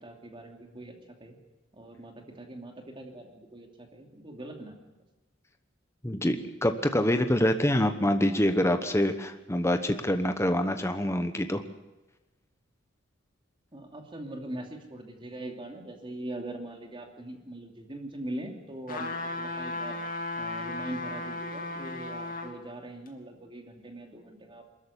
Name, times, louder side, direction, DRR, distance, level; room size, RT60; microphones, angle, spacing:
voice 1, 0.0-0.9 1.2-1.4 1.7-4.9 13.7-20.0 20.4-24.6, right 1 dB, 25° right, 3 dB, 2.8 m, -41 dB
voice 2, 6.0-11.6, left 1 dB, 15° left, 7 dB, 1.1 m, -26 dB
sound 1, 18.9-22.5 23.1-23.2, left 2 dB, 45° left, 2.7 m, -35 dB
23.0 x 14.0 x 9.9 m, 1.1 s
head